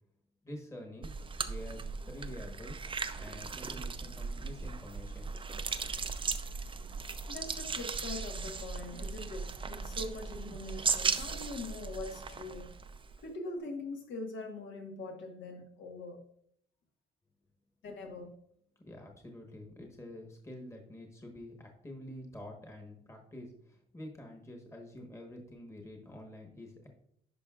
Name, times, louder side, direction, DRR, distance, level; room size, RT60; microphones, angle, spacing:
voice 1, 0.4-1.1 1.4-2.8 3.2-5.3 18.8-26.9, left 1 dB, 15° left, 2 dB, 1.3 m, -47 dB
sound 1, 1.0-13.2, right 5 dB, 25° right, 0.5 m, -37 dB
voice 2, 7.3-12.7 13.2-16.2 17.8-18.3, left 2 dB, 70° left, 2 dB, 1.5 m, -42 dB
10.5 x 5.0 x 2.4 m, 0.68 s
cardioid pair, 90°, 20 cm